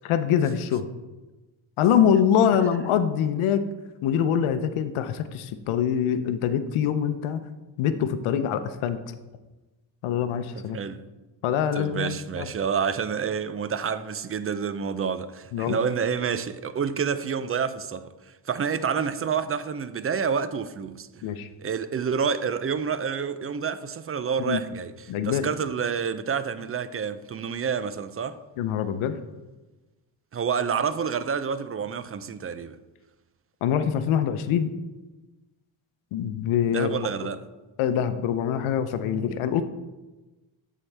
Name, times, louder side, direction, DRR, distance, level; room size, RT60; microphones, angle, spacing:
voice 1, 0.0-0.9 1.8-3.6 4.0-7.4 7.8-9.0 10.0-10.8 11.4-12.5 15.5-15.8 21.2-21.5 24.5-24.6 25.1-25.5 28.6-29.2 33.6-34.7 36.1-36.9 37.8-39.6, left 8 dB, 80° left, 0.7 m, -24 dB
voice 2, 10.5-11.0 11.7-21.3 21.6-24.9 25.2-28.4 30.3-32.8 36.7-37.5, right 6 dB, 30° right, 0.5 m, -28 dB
13.0 x 4.7 x 3.4 m
cardioid pair, 80°, 49 cm